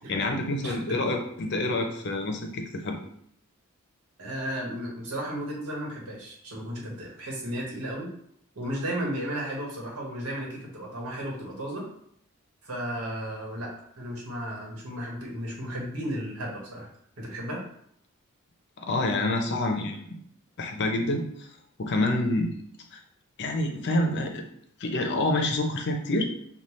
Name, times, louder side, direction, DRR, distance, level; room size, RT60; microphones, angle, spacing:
voice 1, 0.1-3.0 18.8-20.0 20.6-21.5 21.8-22.5 22.9-23.0 23.4-24.4 24.8-26.3, left 2 dB, 50° left, 3 dB, 0.6 m, -27 dB
voice 2, 0.6-1.0 4.2-8.1 8.5-11.8 12.6-13.7 14.0-16.9 17.2-17.6, equal, 80° right, -3 dB, 1.3 m, -34 dB
5.3 x 2.4 x 3.1 m, 0.68 s
head